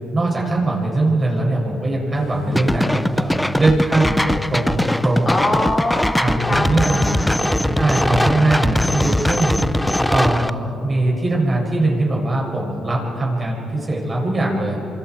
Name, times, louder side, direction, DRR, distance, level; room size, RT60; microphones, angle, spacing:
voice 1, 0.1-5.3 6.2-7.2 7.8-14.8, right 2 dB, 30° right, -3 dB, 7.7 m, -21 dB
sound 1, 2.1-10.1, left 1 dB, 55° left, 6.6 m, -33 dB
sound 2, 2.6-10.5, left 1 dB, 5° left, 0.5 m, -20 dB
voice 2, 5.3-6.1 6.5-7.8 8.2-8.9, left 2 dB, 25° left, -3 dB, 4.2 m, -25 dB
27.0 x 26.5 x 5.0 m, 3.0 s
cardioid pair, 90°, 0 cm